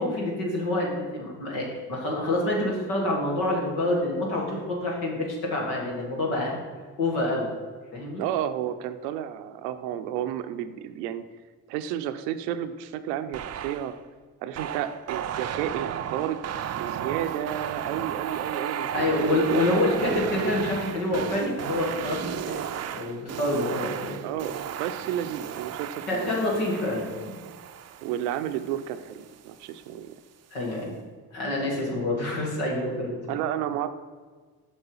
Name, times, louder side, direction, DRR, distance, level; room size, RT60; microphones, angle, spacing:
voice 1, 0.0-6.6 7.0-7.5 7.9-8.2 18.9-22.2 22.5-22.6 22.9-24.2 26.1-27.4 30.5-30.9 31.3-33.2, left 1 dB, 80° left, -2 dB, 2.0 m, -27 dB
voice 2, 8.2-11.3 11.7-13.9 14.4-16.4 16.7-19.9 23.6-23.7 24.2-26.6 28.0-30.2 33.3-33.9, right 11 dB, 80° right, 10 dB, 0.6 m, -32 dB
sound 1, 13.3-14.0 14.5-29.2, right 9 dB, 35° right, 0.5 m, -34 dB
7.1 x 5.4 x 5.5 m, 1.5 s
hypercardioid pair, 45°, 47 cm